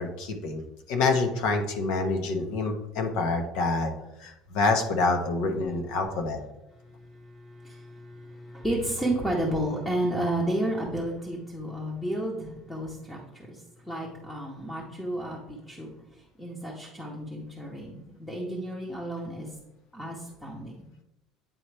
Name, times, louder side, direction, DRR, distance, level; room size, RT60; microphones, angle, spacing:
voice 1, 0.0-3.9 4.2-6.4, left 3 dB, 65° left, 5 dB, 1.0 m, -27 dB
voice 2, 7.6-13.2 13.9-15.9 16.4-19.5 19.9-20.2 20.4-20.8, right 1 dB, 5° left, -3 dB, 0.9 m, -31 dB
8.9 x 4.3 x 3.3 m, 0.88 s
cardioid pair, 165°, 0 cm